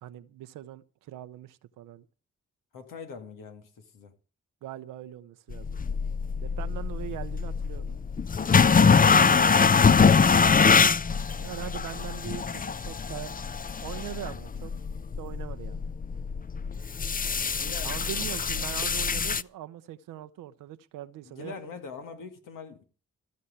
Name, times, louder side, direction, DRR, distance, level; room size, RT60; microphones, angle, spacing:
voice 1, 0.0-2.1 4.6-5.8 6.4-8.0 11.4-13.3 13.8-14.7 15.2-15.9 17.8-21.5, right 12 dB, 85° right, 0.7 m, -41 dB
voice 2, 2.7-4.1 8.6-10.3 17.6-18.3 21.2-22.8, left 5 dB, 80° left, 2.1 m, -42 dB
sound 1, 5.5-19.4, left 5 dB, 25° left, 0.6 m, -24 dB
15.0 x 6.3 x 8.6 m
supercardioid pair, 40°, 32 cm